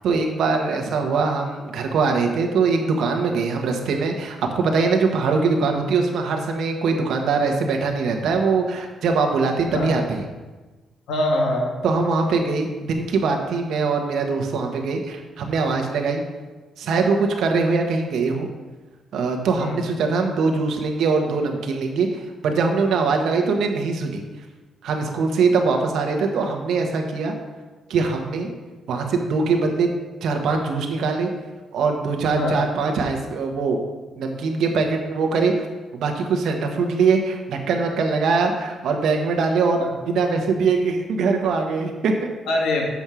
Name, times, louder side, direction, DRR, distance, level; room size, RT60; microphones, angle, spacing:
voice 1, 0.0-10.2 11.8-16.2 16.8-18.5 19.1-24.2 24.8-27.3 27.9-28.5 28.9-29.9 30.2-31.3 31.7-33.8 34.2-35.5 35.9-42.3, right 4 dB, 75° right, 3 dB, 1.3 m, -22 dB
voice 2, 11.1-11.7 19.6-19.8 32.3-32.6 39.8-39.9 42.5-42.9, left 1 dB, 90° left, 0 dB, 1.5 m, -23 dB
7.2 x 5.4 x 6.1 m, 1.2 s
cardioid pair, 130°, 0 cm